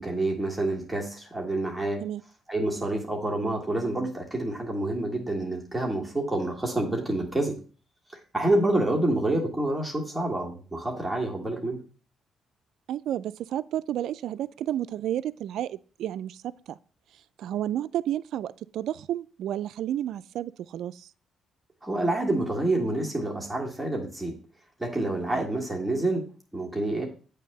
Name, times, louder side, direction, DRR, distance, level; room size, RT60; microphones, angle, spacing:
voice 1, 0.0-2.1 2.5-7.6 8.1-11.8 21.8-24.3 24.8-26.2 26.5-27.1, right 2 dB, 5° right, 1.8 m, -28 dB
voice 2, 12.9-16.8 17.4-21.1 25.3-25.5, right 11 dB, 75° right, 0.4 m, -31 dB
8.5 x 3.4 x 6.7 m
cardioid pair, 90°, 0 cm